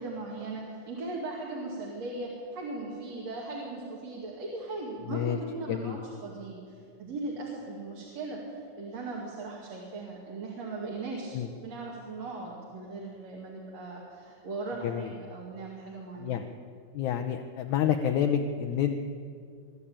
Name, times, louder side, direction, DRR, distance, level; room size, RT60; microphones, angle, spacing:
voice 1, 0.0-11.4 11.6-16.4, right 2 dB, 55° right, -3 dB, 3.5 m, -38 dB
voice 2, 5.1-5.4 5.7-6.0 11.3-11.5 14.8-15.1 16.2-16.5 16.9-19.0, left 9 dB, 75° left, 6 dB, 2.0 m, -28 dB
23.5 x 12.5 x 8.8 m, 2.3 s
omnidirectional pair, 3.7 m